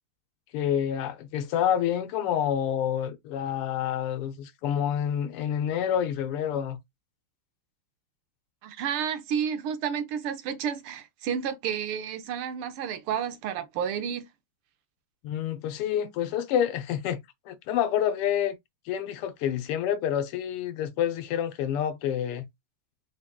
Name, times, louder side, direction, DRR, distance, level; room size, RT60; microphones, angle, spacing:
voice 1, 0.5-6.8 15.2-18.6 18.9-22.5, left 9 dB, 90° left, 1.7 m, -28 dB
voice 2, 8.6-14.2, right 8 dB, 80° right, 1.6 m, -31 dB
4.6 x 2.2 x 3.5 m
omnidirectional pair, 2.4 m